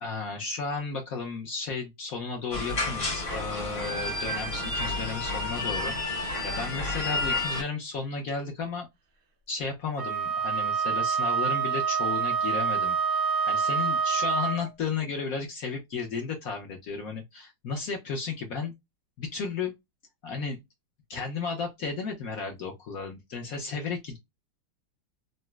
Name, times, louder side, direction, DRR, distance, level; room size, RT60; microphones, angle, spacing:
voice 1, 0.0-8.9 9.5-18.7 19.2-19.7 20.2-20.6 21.1-24.2, left 5 dB, 60° left, 1.1 m, -34 dB
sound 1, 2.5-7.6, left 2 dB, 30° left, 0.5 m, -30 dB
Wind instrument woodwind instrument, 10.0-14.7, right 6 dB, 75° right, 0.6 m, -27 dB
4.0 x 2.0 x 2.2 m
omnidirectional pair, 1.9 m